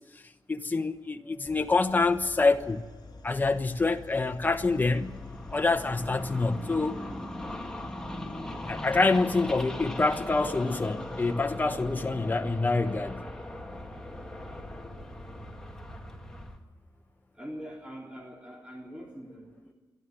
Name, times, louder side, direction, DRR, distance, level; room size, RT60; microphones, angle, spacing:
voice 1, 0.5-2.8 3.2-5.2 5.5-7.0 8.7-13.2, left 3 dB, 25° left, 1.2 m, -26 dB
sound 1, 1.4-11.3, left 4 dB, 60° left, 3.9 m, -49 dB
sound 2, 4.5-16.6, left 1 dB, 10° left, 1.8 m, -39 dB
voice 2, 17.4-19.7, equal, 10° right, 3.7 m, -43 dB
27.0 x 11.5 x 9.4 m
wide cardioid pair, 125°, 8 cm